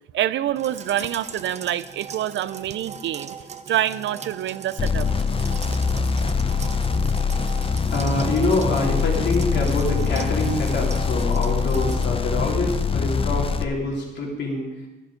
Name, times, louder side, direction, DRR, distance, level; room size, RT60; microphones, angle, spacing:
voice 1, 0.1-3.4 3.7-5.1, right 12 dB, 70° right, 16 dB, 0.6 m, -26 dB
sound 1, 0.6-12.1, right 6 dB, 35° right, 0.8 m, -39 dB
sound 2, 4.8-13.6, left 5 dB, 25° left, 0.7 m, -23 dB
voice 2, 7.9-14.7, left 2 dB, 60° left, -1 dB, 3.6 m, -25 dB
12.0 x 11.0 x 5.1 m, 1.1 s
cardioid pair, 90°, 20 cm